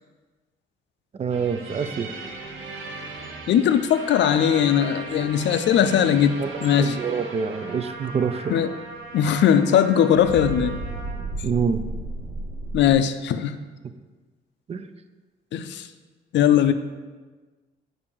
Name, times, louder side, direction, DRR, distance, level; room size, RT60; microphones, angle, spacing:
voice 1, 1.1-2.1 6.4-8.5 11.4-11.8 14.7-14.9, right 6 dB, 30° right, 10 dB, 0.4 m, -26 dB
sound 1, 1.3-9.9 10.1-12.9, right 2 dB, 90° right, 0.7 m, -36 dB
voice 2, 3.5-7.0 8.5-8.7 9.1-10.8 12.7-13.6 15.5-15.9 16.3-16.7, left 9 dB, 65° left, 10 dB, 0.4 m, -19 dB
Trumpet, 3.9-11.2, right 2 dB, 50° right, 1.6 m, -40 dB
6.5 x 2.6 x 5.5 m, 1.3 s
cardioid pair, 90°, 20 cm